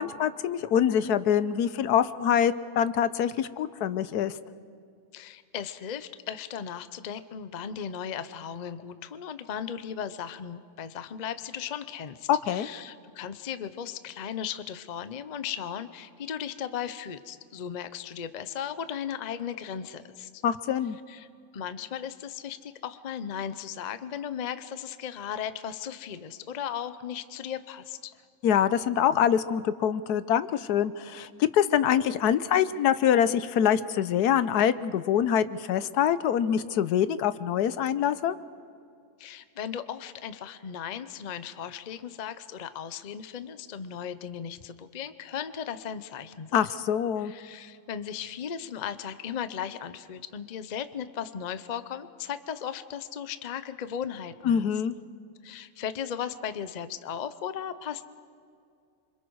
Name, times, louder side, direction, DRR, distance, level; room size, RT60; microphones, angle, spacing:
voice 1, 0.0-4.3 12.3-12.7 20.4-21.0 28.4-38.4 46.5-47.3 54.4-54.9, left 9 dB, 80° left, 14 dB, 1.3 m, -25 dB
voice 2, 5.1-20.4 21.1-21.3 21.5-28.1 39.2-46.6 47.2-54.7 55.4-58.0, left 8 dB, 45° left, 12 dB, 0.6 m, -36 dB
28.0 x 26.0 x 4.7 m, 2.4 s
omnidirectional pair, 1.7 m